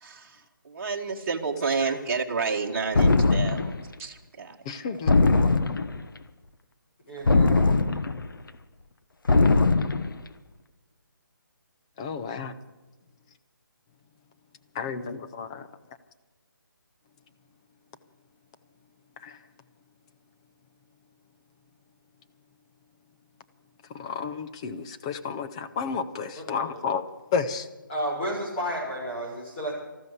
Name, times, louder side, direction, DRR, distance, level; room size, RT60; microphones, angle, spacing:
voice 1, 0.0-5.0, right 4 dB, 40° right, -1 dB, 1.7 m, -31 dB
sound 1, 2.9-3.8 5.1-6.0 7.3-8.3 9.3-10.1, left 3 dB, 70° left, 1.2 m, -21 dB
voice 2, 4.7-5.2 12.0-12.5 14.8-15.6 24.0-27.0 27.3-27.6, left 6 dB, 15° left, 8 dB, 0.6 m, -31 dB
voice 3, 7.1-7.6 26.3-26.8 27.9-29.7, equal, 30° left, -4 dB, 6.3 m, -32 dB
14.0 x 13.0 x 8.1 m, 1.2 s
hypercardioid pair, 165°, 11 cm